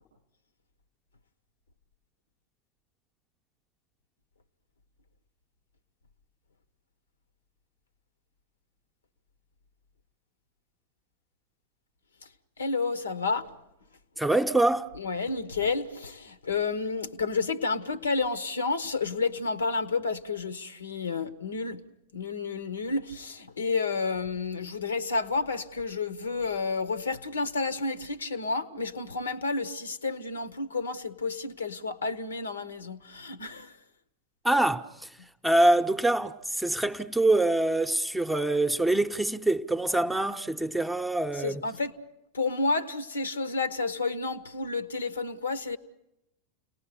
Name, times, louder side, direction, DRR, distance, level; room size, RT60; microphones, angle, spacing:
voice 1, 12.6-13.5 15.0-21.8 22.1-33.7 41.4-41.9 42.3-45.8, left 4 dB, 70° left, 1.1 m, -30 dB
voice 2, 14.2-14.9 34.4-35.1 35.4-41.6, right 2 dB, 5° right, 0.9 m, -25 dB
29.5 x 19.0 x 6.9 m
figure-of-eight pair, 90°, 0 cm